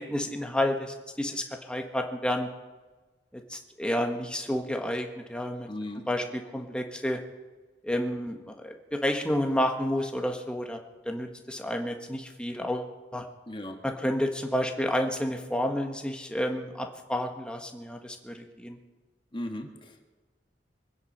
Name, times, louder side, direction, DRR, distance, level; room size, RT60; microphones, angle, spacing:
voice 1, 0.0-2.5 3.3-5.7 6.1-7.2 7.8-10.8 11.0-13.3 13.8-18.8, left 1 dB, 5° left, 3 dB, 1.4 m, -30 dB
voice 2, 5.7-6.1 13.5-13.8 19.3-20.1, left 1 dB, 30° left, 4 dB, 1.6 m, -37 dB
24.5 x 9.6 x 5.6 m, 1.3 s
head